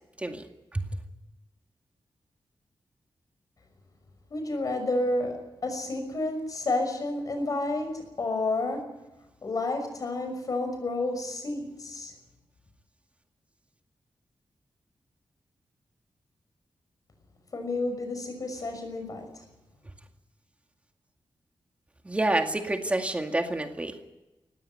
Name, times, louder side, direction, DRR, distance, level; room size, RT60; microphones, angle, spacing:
voice 1, 4.3-8.9 9.4-12.1 17.5-19.4, left 2 dB, 45° left, 6 dB, 6.0 m, -30 dB
voice 2, 22.0-24.0, right 2 dB, 15° right, 5 dB, 2.1 m, -28 dB
19.0 x 16.5 x 9.5 m, 1.0 s
wide cardioid pair, 170°, 9 cm